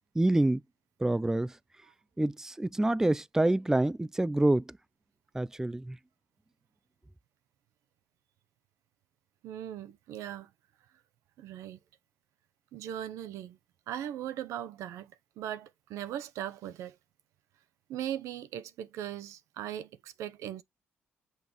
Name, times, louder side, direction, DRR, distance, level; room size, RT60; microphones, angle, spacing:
voice 1, 0.2-0.6 1.0-1.5 2.2-4.6 5.3-6.0, right 1 dB, 10° right, 0.4 m, -27 dB
voice 2, 9.4-10.5 11.4-11.8 12.7-13.6 13.9-16.9 17.9-20.6, right 11 dB, 80° right, 0.7 m, -39 dB
6.4 x 5.2 x 3.0 m
supercardioid pair, 50°, 5 cm